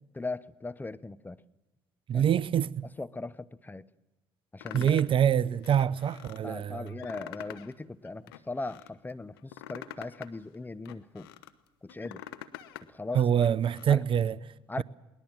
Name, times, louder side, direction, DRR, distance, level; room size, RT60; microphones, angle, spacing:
voice 1, 0.1-1.4 2.1-2.2 3.0-3.9 4.5-5.0 6.4-11.3 11.8-12.2 12.9-13.2 13.9-14.0 14.7-14.8, left 3 dB, 15° left, 0.9 m, -38 dB
voice 2, 2.1-2.9 4.7-6.9 13.1-14.8, right 9 dB, 45° right, 0.6 m, -26 dB
sound 1, 4.6-5.2 5.6-6.4 6.9-7.7 8.0-8.9 9.4-11.5 11.9-12.9 13.2-13.9, left 12 dB, 85° left, 0.9 m, -45 dB
21.0 x 19.5 x 7.5 m
hypercardioid pair, 60°, 12 cm